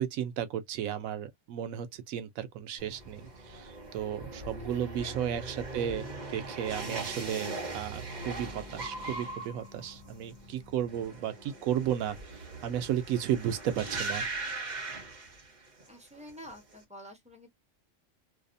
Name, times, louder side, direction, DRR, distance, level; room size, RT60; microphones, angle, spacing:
voice 1, 0.0-14.3, right 10 dB, 90° right, 1.0 m, -34 dB
sound 1, 2.8-15.9 16.2-16.7, right 2 dB, 40° right, 0.9 m, -40 dB
sound 2, 8.4-13.1, left 9 dB, 65° left, 1.2 m, -58 dB
voice 2, 15.9-17.5, equal, 5° right, 0.9 m, -48 dB
2.7 x 2.0 x 2.5 m
omnidirectional pair, 1.4 m